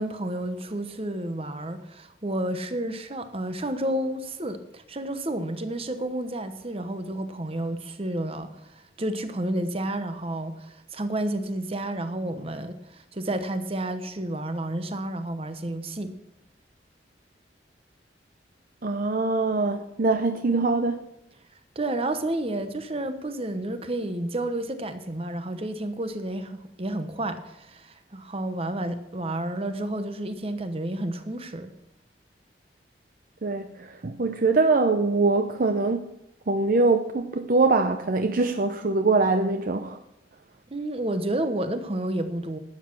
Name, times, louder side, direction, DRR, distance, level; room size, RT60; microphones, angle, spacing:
voice 1, 0.0-16.1 21.7-31.7 40.7-42.6, right 1 dB, 35° right, 1.0 m, -31 dB
voice 2, 18.8-21.0 33.4-36.0 36.5-40.0, right 3 dB, 50° right, 0.6 m, -23 dB
12.0 x 8.3 x 6.1 m
head